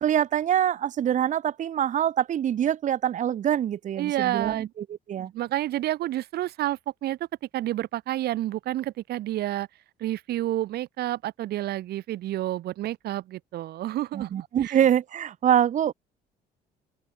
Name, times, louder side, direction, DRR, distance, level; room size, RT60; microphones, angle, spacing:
voice 1, 0.0-4.7 5.1-5.3 14.1-15.9, right 10 dB, 45° right, 1.0 m, -24 dB
voice 2, 4.0-4.7 5.1-7.3 7.5-9.7 10.0-14.8, right 14 dB, 70° right, 2.3 m, -29 dB
open air
cardioid pair, 110°, 17 cm